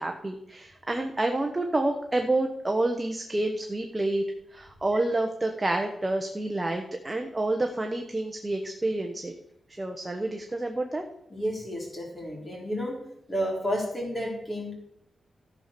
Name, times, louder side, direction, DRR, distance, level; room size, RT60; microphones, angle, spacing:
voice 1, 0.0-4.2 4.5-9.3 9.7-11.0, right 2 dB, 15° right, 4 dB, 1.0 m, -28 dB
voice 2, 11.3-13.0 13.3-14.7, equal, 20° left, -2 dB, 4.1 m, -31 dB
14.0 x 5.8 x 6.8 m, 0.75 s
wide cardioid pair, 140°, 0 cm